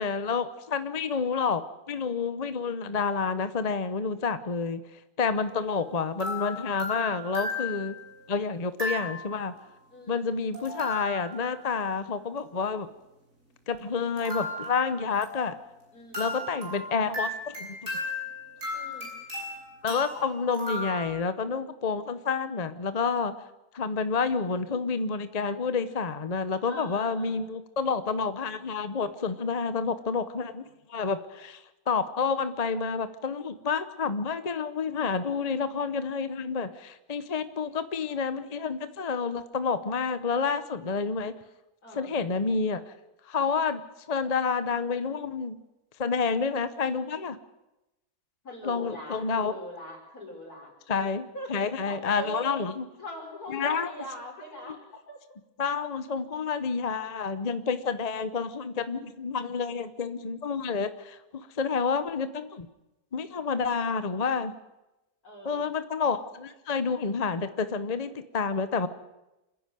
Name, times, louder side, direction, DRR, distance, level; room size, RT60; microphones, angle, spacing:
voice 1, 0.0-1.6 1.9-4.8 5.2-8.0 8.3-9.6 10.1-12.9 13.7-15.5 16.2-18.0 19.8-23.3 23.7-41.4 41.9-42.8 43.3-43.8 44.1-45.6 46.0-47.4 48.6-49.5 50.9-52.9 53.5-53.9 55.6-61.2 61.5-62.7 63.1-64.5 65.4-68.9, left 5 dB, 30° left, 11 dB, 0.8 m, -29 dB
sound 1, 5.3-5.6 6.2-8.1 8.8-9.5 10.5-11.6 14.2-15.8 16.1-21.1, left 2 dB, 60° right, 7.2 m, -35 dB
voice 2, 9.9-10.4 15.9-16.4 18.7-19.1 26.7-27.5 41.8-42.2 48.4-51.0 51.3-52.6 53.0-54.8 55.1-55.2 65.2-65.7, equal, 75° left, 0 dB, 5.7 m, -41 dB
27.0 x 10.5 x 9.3 m, 0.99 s
omnidirectional pair, 1.6 m